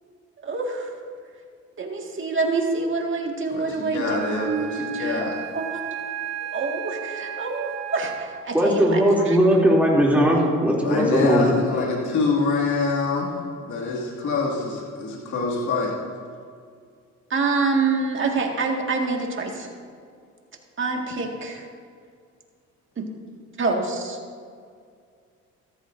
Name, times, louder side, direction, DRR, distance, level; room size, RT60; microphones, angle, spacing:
voice 1, 0.4-0.9 1.8-5.2 5.5-5.9 6.4-9.4 17.3-19.7 20.8-21.7 23.0-23.1 23.6-24.2, right 3 dB, 40° right, 1 dB, 1.9 m, -26 dB
voice 2, 3.5-5.4 10.8-15.9, left 3 dB, 75° left, -4 dB, 2.4 m, -25 dB
Wind instrument woodwind instrument, 4.0-8.6, right 10 dB, 60° right, 2.8 m, -34 dB
voice 3, 8.5-11.5, equal, 5° right, -4 dB, 2.9 m, -18 dB
14.5 x 13.5 x 2.7 m, 2.1 s
cardioid pair, 90°, 30 cm